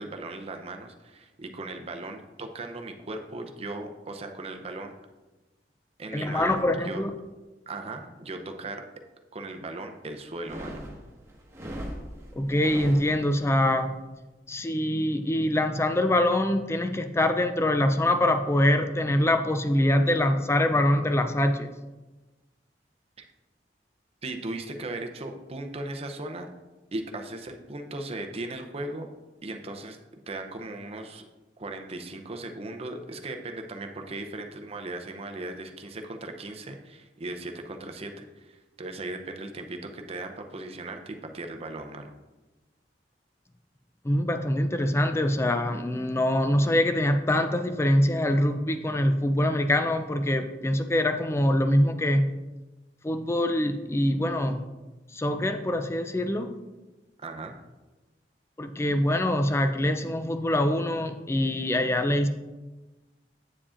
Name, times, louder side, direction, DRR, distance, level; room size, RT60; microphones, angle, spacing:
voice 1, 0.0-4.9 6.0-6.6 6.8-7.0 7.7-8.8 9.3-10.8 23.2-23.3 24.2-26.5 26.9-29.1 29.4-30.0 30.3-31.2 31.6-42.1 57.2-57.6, right 2 dB, 35° right, 4 dB, 0.6 m, -37 dB
voice 2, 6.1-7.1 12.4-13.9 14.5-21.7 44.0-52.3 53.0-54.6 55.1-56.5 58.6-62.3, left 1 dB, 15° left, 8 dB, 0.4 m, -24 dB
sound 1, 10.3-13.5, equal, 15° right, 1.5 m, -39 dB
8.5 x 7.2 x 2.5 m, 1.2 s
head